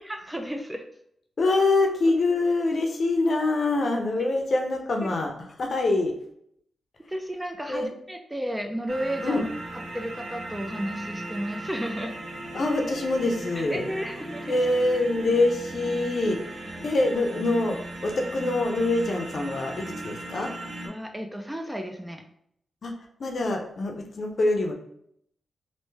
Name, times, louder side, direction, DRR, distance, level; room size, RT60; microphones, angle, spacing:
voice 1, 0.1-0.8 4.1-4.3 5.0-5.1 7.1-9.5 9.7-12.1 13.7-14.6 20.9-22.2, equal, 10° right, 5 dB, 0.4 m, -33 dB
voice 2, 1.4-5.3 5.6-6.2 7.7-7.9 9.2-9.4 12.5-13.8 14.5-16.4 16.8-20.5 22.8-22.9 23.2-24.7, left 2 dB, 55° left, 3 dB, 0.6 m, -25 dB
sound 1, 8.9-20.9, right 1 dB, 80° right, 0.8 m, -38 dB
3.3 x 2.6 x 3.2 m, 0.71 s
cardioid pair, 75°, 0 cm